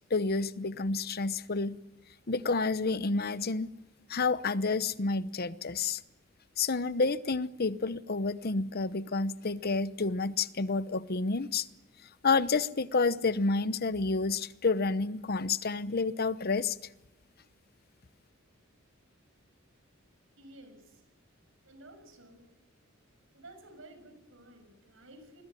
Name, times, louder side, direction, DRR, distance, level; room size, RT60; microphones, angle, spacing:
voice 1, 0.1-1.8 2.3-3.7 4.1-6.0 6.6-11.7 12.2-16.8, left 3 dB, 50° left, 0.9 m, -29 dB
voice 2, 20.4-21.0 21.7-22.4 23.3-25.4, right 1 dB, 70° right, 6.9 m, -53 dB
26.5 x 21.0 x 9.9 m
head